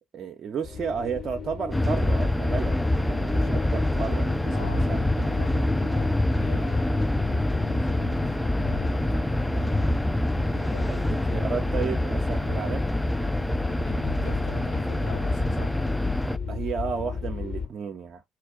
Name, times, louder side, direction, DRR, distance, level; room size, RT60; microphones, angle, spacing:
voice 1, 0.1-5.0 10.9-12.9 16.5-18.2, right 6 dB, 50° right, 0.5 m, -33 dB
sound 1, 0.6-17.7, left 5 dB, 55° left, 1.1 m, -35 dB
sound 2, 1.7-16.4, left 1 dB, 5° left, 0.3 m, -25 dB
voice 2, 4.5-9.8 10.5-11.5 13.5-15.8, left 6 dB, 80° left, 0.6 m, -43 dB
4.3 x 2.2 x 3.7 m
figure-of-eight pair, 45°, 0 cm